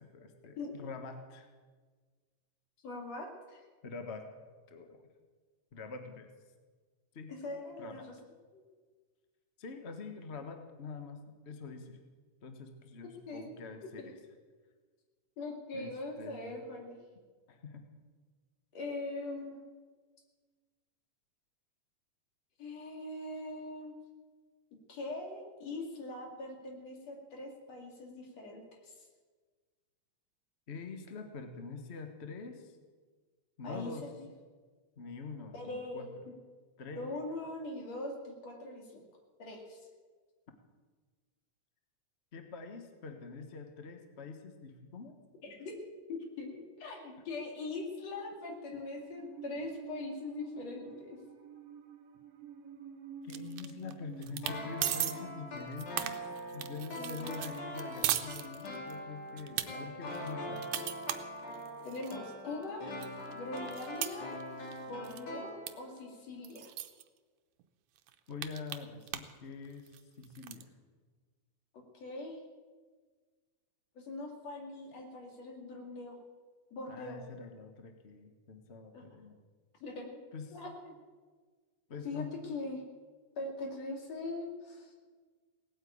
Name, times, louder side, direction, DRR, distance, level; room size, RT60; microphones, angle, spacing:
voice 1, 0.0-1.5 3.8-4.3 4.7-5.0 5.7-6.3 7.1-7.3 7.8-8.0 9.6-12.0 12.4-14.1 15.7-16.6 17.5-17.8 30.7-32.8 33.6-34.1 35.0-36.1 36.8-37.1 42.3-45.1 53.2-56.2 56.5-60.7 68.3-69.9 70.2-70.7 76.9-79.4 80.3-80.5 81.9-82.3, left 4 dB, 45° left, 5 dB, 0.9 m, -45 dB
voice 2, 2.8-3.6 7.3-8.2 8.5-8.6 13.3-13.4 14.0-14.1 15.4-17.0 18.7-19.6 22.6-23.9 24.9-28.9 33.6-34.3 35.5-36.3 37.0-39.0 39.4-39.8 45.4-45.8 46.1-51.2 57.0-57.4 61.8-62.9 63.3-64.3 64.9-66.7 71.9-72.4 74.0-76.2 76.7-77.2 78.9-79.1 79.8-80.2 80.5-80.9 82.0-82.8 83.4-84.9, left 2 dB, 60° left, 1 dB, 3.7 m, -42 dB
Musical instrument, 48.7-55.6, right 7 dB, 60° right, 2.1 m, -49 dB
sound 1, 53.3-53.9 54.2-54.6 54.8-55.1 55.6-59.0 59.4-59.7 60.1-62.2 62.6-62.7 63.0-64.8 65.0-65.3 65.7-65.8 66.0-66.1 66.4-67.0 67.6-67.7 68.0-69.4 69.7-70.6, right 12 dB, 90° right, 2.2 m, -37 dB
sound 2, 54.4-66.1 66.3-66.4, left 1 dB, 90° left, 4.6 m, -43 dB
18.5 x 9.1 x 8.6 m, 1.5 s
omnidirectional pair, 3.3 m